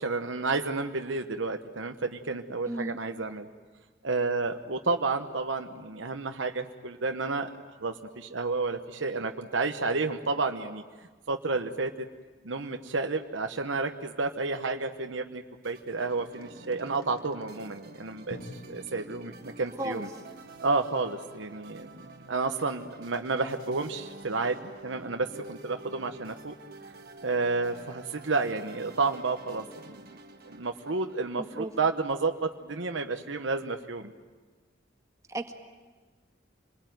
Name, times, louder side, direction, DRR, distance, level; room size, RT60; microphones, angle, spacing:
voice 1, 0.0-3.5 4.0-7.5 7.8-10.8 11.3-12.1 12.4-18.4 18.6-20.1 20.6-26.5 27.2-30.1 30.4-34.1, right 3 dB, 80° right, 6 dB, 1.0 m, -31 dB
voice 2, 2.7-3.0 19.8-20.1 31.4-31.7 35.3-35.5, right 1 dB, 15° right, 4 dB, 1.9 m, -34 dB
sound 1, 15.6-33.0, right 2 dB, 50° right, 1.6 m, -49 dB
Drum, 18.3-22.3, left 1 dB, 90° left, 1.9 m, -49 dB
27.5 x 21.0 x 9.3 m, 1.4 s
head